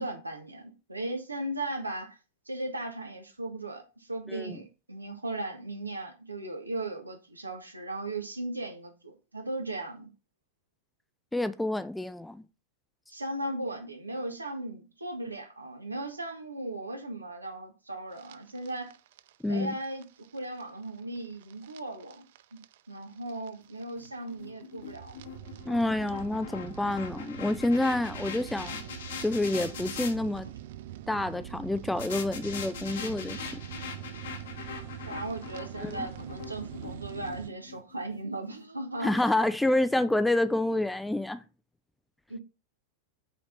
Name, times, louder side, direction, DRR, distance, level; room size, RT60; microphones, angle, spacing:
voice 1, 0.0-2.2 2.5-10.1 13.1-18.9 19.5-22.2 22.5-22.6 22.9-25.1 35.1-39.3 42.3-42.4, right 2 dB, 80° right, 1.4 m, -37 dB
voice 2, 4.3-4.6 11.3-12.4 19.4-19.7 25.7-28.8 29.2-30.5 31.1-33.5 35.8-36.0 39.0-41.4, left 1 dB, 5° left, 0.5 m, -28 dB
sound 1, 18.1-37.5, right 12 dB, 55° right, 0.4 m, -44 dB
sound 2, 23.9-30.1 32.0-38.2, left 6 dB, 60° left, 1.3 m, -42 dB
5.8 x 4.2 x 5.6 m
figure-of-eight pair, 90°, 0 cm